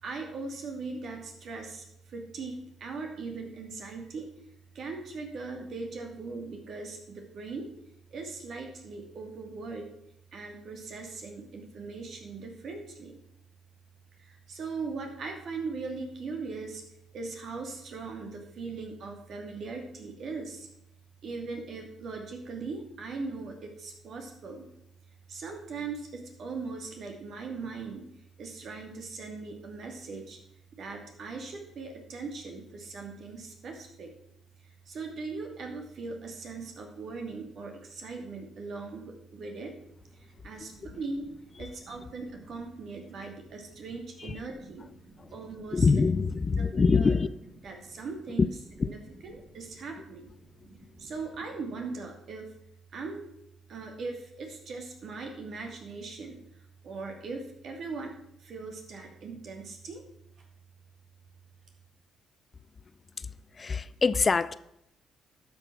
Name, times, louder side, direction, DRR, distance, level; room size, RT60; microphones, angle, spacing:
voice 1, 0.0-4.3 4.7-7.7 8.1-9.9 10.3-13.2 14.2-16.8 17.1-20.7 21.2-24.7 25.3-28.1 28.4-30.4 30.7-34.1 34.9-39.7 40.2-46.0 46.5-47.2 47.6-48.5 48.8-50.3 50.6-52.5 52.9-53.2 53.7-56.4 56.8-58.1 58.4-60.0, right 4 dB, 60° right, 3 dB, 2.7 m, -39 dB
voice 2, 45.7-47.3 48.4-48.5 48.8-48.9 63.6-64.6, left 4 dB, 35° left, 16 dB, 0.5 m, -24 dB
12.0 x 6.4 x 6.1 m, 0.78 s
cardioid pair, 90°, 0 cm